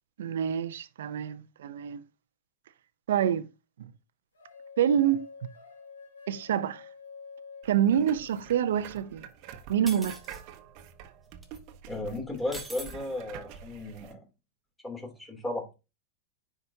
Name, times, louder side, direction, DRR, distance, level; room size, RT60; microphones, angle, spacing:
voice 1, 0.2-2.0 3.1-3.5 3.8-3.9 4.8-5.2 6.3-6.8 7.6-9.3 9.7-10.2, right 9 dB, 75° right, 0.7 m, -27 dB
sound 1, 4.3-8.8, left 5 dB, 85° left, 2.7 m, -49 dB
sound 2, 7.6-14.1, right 8 dB, 50° right, 1.1 m, -47 dB
sound 3, 9.9-10.4 11.4-11.6 12.5-12.9, right 2 dB, 10° right, 3.4 m, -42 dB
voice 2, 11.9-14.2 14.8-15.7, left 2 dB, 10° left, 3.2 m, -35 dB
9.8 x 5.0 x 2.8 m
hypercardioid pair, 100°, 0 cm